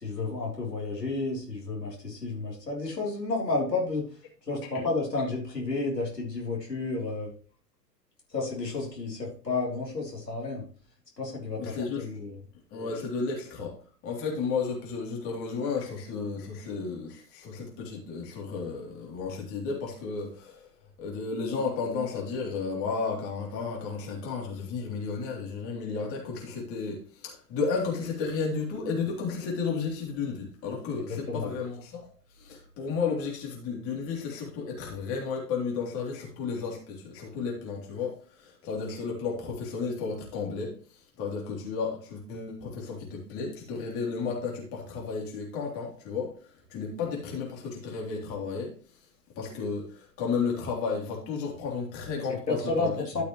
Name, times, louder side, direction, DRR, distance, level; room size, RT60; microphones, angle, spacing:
voice 1, 0.0-4.0 4.5-7.3 8.3-10.6 11.2-12.3 31.3-31.5 52.5-53.2, left 3 dB, 85° left, -2 dB, 3.6 m, -31 dB
voice 2, 11.5-12.1 12.7-13.7 14.0-20.7 21.0-32.1 32.4-40.7 41.2-48.7 49.4-53.2, left 5 dB, 30° left, -1 dB, 3.3 m, -33 dB
12.5 x 6.6 x 3.1 m, 0.39 s
figure-of-eight pair, 110°, 48 cm